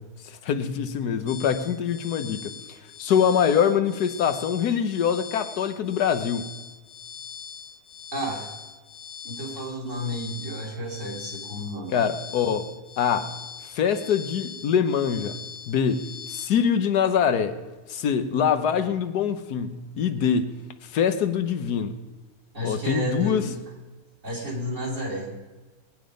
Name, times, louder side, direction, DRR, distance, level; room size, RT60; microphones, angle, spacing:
voice 1, 0.2-2.5 3.0-6.5 11.9-12.7 13.0-13.3 13.6-15.4 15.7-17.6 17.9-22.0 22.6-23.4, left 7 dB, 90° left, 10 dB, 1.5 m, -24 dB
sound 1, 1.3-16.5, left 7 dB, 70° left, 1.3 m, -41 dB
voice 2, 8.1-8.5 9.2-12.0 22.5-23.5 24.2-25.3, equal, 50° right, -3 dB, 3.8 m, -31 dB
19.0 x 9.7 x 5.1 m, 1.2 s
omnidirectional pair, 1.6 m